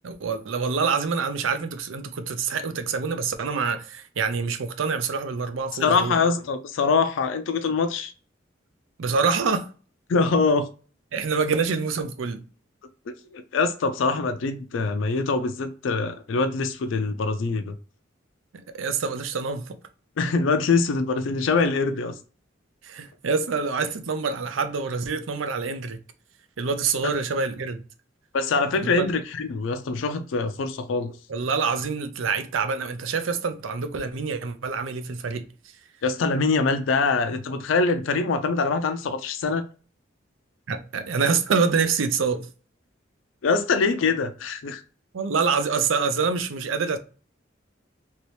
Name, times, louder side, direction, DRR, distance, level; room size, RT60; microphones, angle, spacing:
voice 1, 0.0-6.2 9.0-9.7 11.1-12.4 18.7-19.7 22.8-26.0 26.6-27.8 28.8-29.1 31.3-35.4 40.7-42.5 45.1-47.0, right 5 dB, 85° right, 0.5 m, -26 dB
voice 2, 5.8-8.1 10.1-10.6 13.1-17.7 20.2-22.1 27.0-27.1 28.3-31.1 36.0-39.7 43.4-44.8, left 4 dB, 80° left, 0.4 m, -24 dB
3.0 x 2.8 x 3.1 m
head